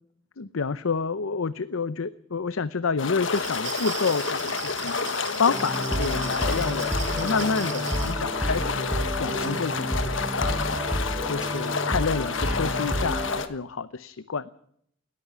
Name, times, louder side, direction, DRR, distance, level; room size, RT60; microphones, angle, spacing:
voice 1, 0.4-10.6 11.2-14.5, left 5 dB, 85° left, 15 dB, 0.7 m, -29 dB
sound 1, 3.0-13.5, left 5 dB, 65° left, 1.5 m, -30 dB
Glass, 3.1-8.2, right 10 dB, 60° right, 3.1 m, -39 dB
sound 2, 5.5-13.4, equal, 5° right, 4.9 m, -30 dB
20.0 x 14.0 x 9.6 m, 0.71 s
head